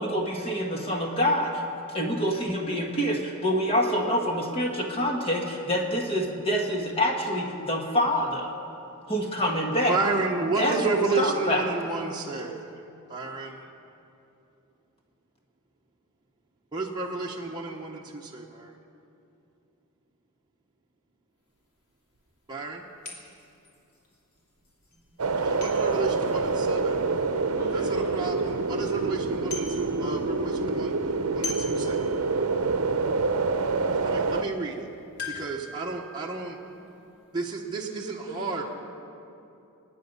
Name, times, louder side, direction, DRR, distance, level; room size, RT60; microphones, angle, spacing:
voice 1, 0.0-1.6 1.9-8.5 9.1-10.0 10.6-11.7, equal, 25° left, 0 dB, 1.5 m, -26 dB
voice 2, 9.9-12.6 13.1-13.6 16.7-18.7 22.5-22.8 25.4-27.0 27.7-31.0 31.3-32.1 34.0-34.9 35.3-36.6 37.3-38.6, right 3 dB, 20° right, -2 dB, 1.1 m, -31 dB
sound 1, 21.5-21.6 22.1-22.2 23.0-27.7 28.2-28.3 28.6-29.0 29.2-30.4 30.6-32.6 33.0-33.1 33.5-33.7 35.2-37.6 37.8-37.9, left 3 dB, 80° left, 3.1 m, -42 dB
sound 2, 25.2-34.4, right 3 dB, 75° right, 0.7 m, -26 dB
voice 3, 27.5-28.2 37.9-38.6, right 1 dB, 45° left, -10 dB, 4.8 m, -40 dB
28.0 x 9.5 x 5.5 m, 2.7 s
head